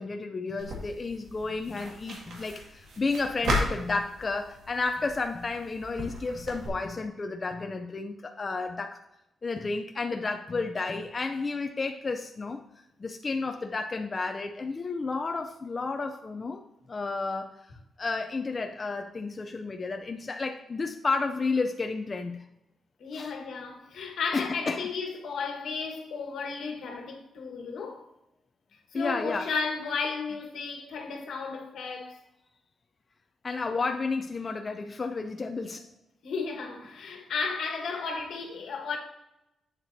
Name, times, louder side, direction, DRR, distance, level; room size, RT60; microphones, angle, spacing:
voice 1, 0.0-9.0 9.4-12.6 13.0-16.6 16.9-17.5 18.0-22.4 23.1-23.3 24.3-24.9 28.9-29.5 33.4-35.9, left 3 dB, 30° left, 0.4 m, -32 dB
sound 1, 0.6-6.7, equal, 75° right, 1.9 m, -35 dB
voice 2, 23.0-28.0 28.9-32.2 36.2-39.0, left 4 dB, 75° left, 1.4 m, -34 dB
8.2 x 7.1 x 2.7 m
wide cardioid pair, 135°, 0 cm